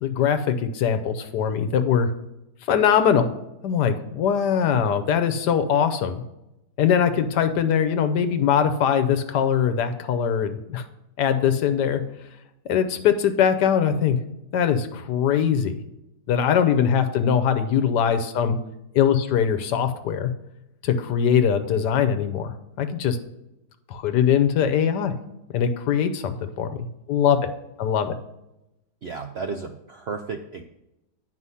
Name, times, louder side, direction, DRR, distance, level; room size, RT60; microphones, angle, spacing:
voice 1, 0.0-2.1 2.7-3.3 3.6-6.2 6.8-10.8 11.2-12.0 12.7-14.2 14.5-15.8 16.3-18.6 18.9-20.3 20.8-23.2 23.9-25.1 25.5-27.5 27.8-28.2, left 8 dB, 85° left, 9 dB, 1.3 m, -22 dB
voice 2, 29.0-30.6, right 4 dB, 70° right, 6 dB, 0.6 m, -33 dB
9.7 x 4.9 x 5.6 m, 0.88 s
omnidirectional pair, 1.8 m